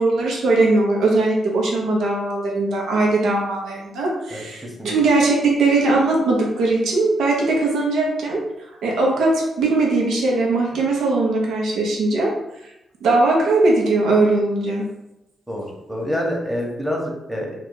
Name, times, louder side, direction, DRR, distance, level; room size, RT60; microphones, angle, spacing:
voice 1, 0.0-8.4 8.8-12.3 13.0-14.8, right 2 dB, 75° right, -2 dB, 0.8 m, -19 dB
voice 2, 4.3-4.9 15.5-17.6, equal, 5° right, -1 dB, 1.0 m, -27 dB
2.6 x 2.3 x 3.9 m, 0.89 s
supercardioid pair, 55°, 0 cm